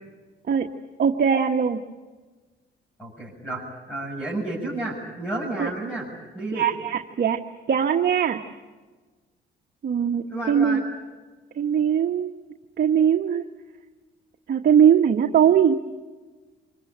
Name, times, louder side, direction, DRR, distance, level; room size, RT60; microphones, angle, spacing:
voice 1, 1.0-1.8 5.6-5.7 6.5-7.4 7.7-8.4 9.8-10.8 11.6-12.3 12.8-13.4 14.5-15.7, right 8 dB, 50° right, 4 dB, 1.4 m, -20 dB
voice 2, 3.0-6.1 6.3-6.7 10.3-10.8, right 2 dB, 10° left, -4 dB, 7.2 m, -31 dB
26.5 x 22.0 x 8.8 m, 1.3 s
cardioid pair, 90°, 20 cm